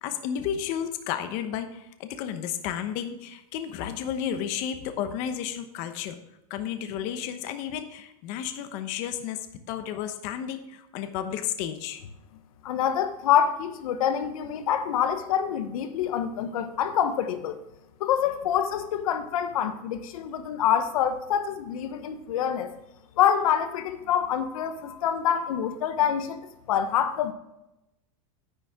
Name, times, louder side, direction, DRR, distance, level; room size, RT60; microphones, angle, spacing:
voice 1, 0.0-6.2 6.5-9.4 9.7-12.0, left 9 dB, 45° left, 1.0 m, -32 dB
voice 2, 12.6-17.6 18.0-22.7 23.2-26.4 26.7-27.3, left 9 dB, 85° left, 1.1 m, -26 dB
10.5 x 9.0 x 3.7 m
supercardioid pair, 160°, 18 cm